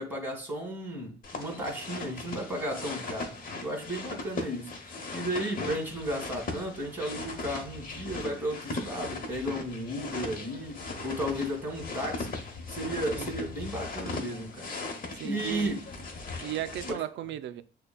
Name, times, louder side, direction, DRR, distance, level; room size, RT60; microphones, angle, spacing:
voice 1, 0.0-4.7 5.1-10.8 11.0-12.4 12.7-14.7 15.2-15.8, equal, 10° right, 1.8 m, -34 dB
sound 1, 1.2-16.9, left 3 dB, 45° left, 0.9 m, -38 dB
voice 2, 15.1-15.7 16.4-17.6, right 12 dB, 70° right, 0.4 m, -36 dB
6.6 x 2.2 x 2.2 m
cardioid pair, 90°, 20 cm